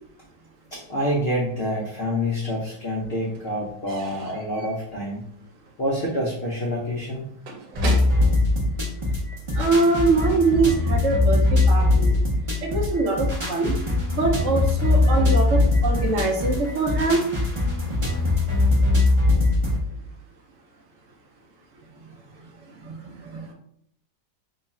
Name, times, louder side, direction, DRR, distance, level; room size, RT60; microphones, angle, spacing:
voice 1, 0.7-5.2 5.8-7.3, equal, 80° left, -3 dB, 0.5 m, -27 dB
Slam / Squeak / Wood, 1.6-2.5 2.7-9.5, right 3 dB, 80° right, 1.3 m, -40 dB
sound 1, 7.7-19.8, left 2 dB, 40° right, 0.4 m, -21 dB
voice 2, 9.6-12.1 12.6-13.8 14.1-17.2 22.8-23.5, right 3 dB, 65° right, 1 dB, 0.8 m, -23 dB
3.0 x 2.3 x 4.1 m, 0.70 s
omnidirectional pair, 1.9 m